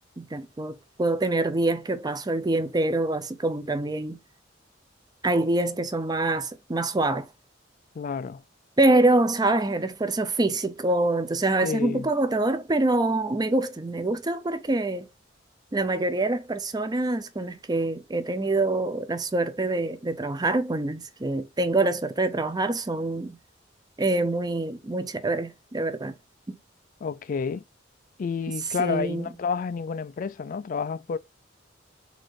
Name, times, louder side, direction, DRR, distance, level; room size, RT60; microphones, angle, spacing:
voice 1, 0.2-4.2 5.2-7.3 8.8-15.1 15.7-23.4 24.0-26.1 26.5-26.6 28.8-29.3, right 2 dB, 20° right, 0.5 m, -25 dB
voice 2, 8.0-8.4 11.6-12.1 27.0-27.6 28.2-31.2, left 5 dB, 45° left, 0.3 m, -30 dB
4.1 x 2.6 x 4.6 m
head